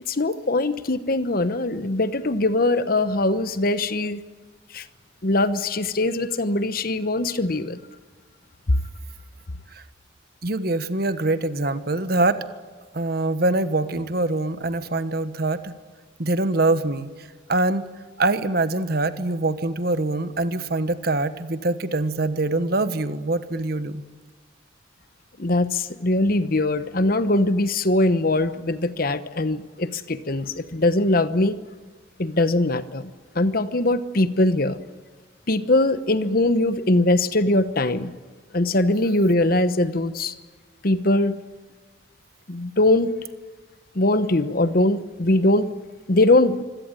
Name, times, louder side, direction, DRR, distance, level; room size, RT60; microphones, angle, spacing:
voice 1, 0.1-4.2 4.7-4.9 5.2-7.8 8.7-8.8 25.4-31.6 32.2-34.8 35.5-38.1 38.5-40.3 40.8-41.4 42.5-43.1 43.9-45.7 46.1-46.6, left 2 dB, 50° left, 13 dB, 1.0 m, -21 dB
voice 2, 10.4-12.4 12.9-15.7 16.2-17.1 17.5-17.9 18.2-24.0, right 2 dB, 50° right, 12 dB, 1.3 m, -24 dB
25.5 x 17.5 x 9.1 m, 1.4 s
head